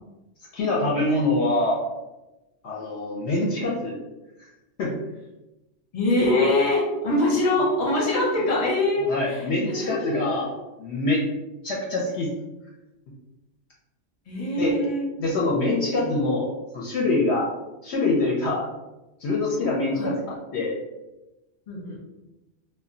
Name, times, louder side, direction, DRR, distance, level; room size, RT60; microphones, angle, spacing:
voice 1, 0.5-1.8 2.6-4.0 4.8-5.0 9.1-10.5 10.8-11.3 11.6-12.3 14.6-14.8 15.2-16.5 16.7-17.5 17.8-18.7 19.2-20.7, left 2 dB, 65° left, -3 dB, 0.8 m, -24 dB
voice 2, 5.9-10.4 14.3-15.1 16.0-16.1 20.0-20.2 21.7-22.0, left 1 dB, 35° left, -3 dB, 0.8 m, -24 dB
2.2 x 2.1 x 3.7 m, 1.0 s
omnidirectional pair, 1.3 m